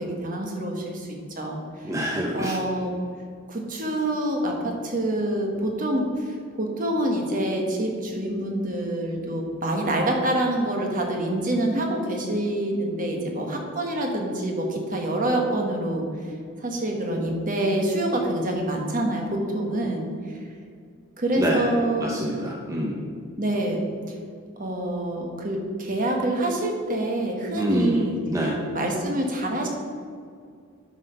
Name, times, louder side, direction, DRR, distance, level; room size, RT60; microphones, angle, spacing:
voice 1, 0.0-1.9 2.3-2.9 3.5-16.1 16.6-20.3 21.2-22.1 23.4-23.8 24.6-29.7, right 1 dB, 40° right, 1 dB, 1.4 m, -26 dB
voice 2, 1.8-2.5 21.4-21.7 22.0-23.0 27.5-28.0 28.3-28.6, equal, 15° right, -1 dB, 0.7 m, -26 dB
9.0 x 5.6 x 5.8 m, 2.2 s
head